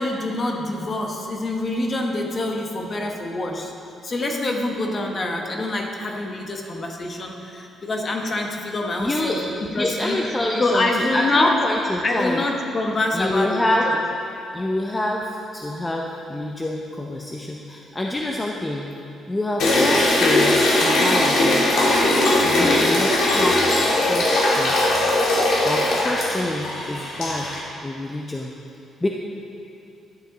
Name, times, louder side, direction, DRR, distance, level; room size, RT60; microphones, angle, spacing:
voice 1, 0.0-3.7 4.0-10.2 10.6-11.6 12.0-14.0, left 2 dB, 40° left, 2 dB, 1.1 m, -25 dB
voice 2, 9.0-9.4 9.7-12.4 13.1-13.9 14.5-18.9 19.3-21.7 22.4-24.8 25.6-28.5 29.0-29.1, left 1 dB, 15° left, -1 dB, 0.6 m, -26 dB
sound 1, 19.6-27.6, left 1 dB, 75° left, 1.6 m, -19 dB
11.5 x 6.4 x 3.9 m, 2.8 s
cardioid pair, 90°, 0 cm